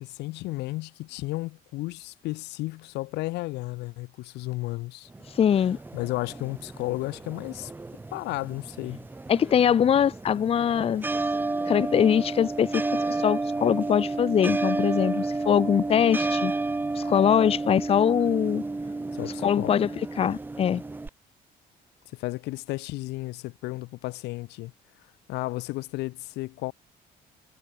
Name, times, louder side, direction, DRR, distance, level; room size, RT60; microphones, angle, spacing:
voice 1, 0.0-5.1 5.9-7.7 8.1-9.0 19.1-19.8 22.1-24.7 25.3-26.7, left 20 dB, 85° left, 0.7 m, -33 dB
sound 1, 5.1-21.1, right 3 dB, 10° right, 0.6 m, -31 dB
voice 2, 5.3-5.8 9.3-11.0 11.7-12.8 13.1-16.5 16.9-18.6 19.4-19.9 20.2-20.8, left 8 dB, 35° left, 0.6 m, -22 dB
cardioid pair, 110°, 17 cm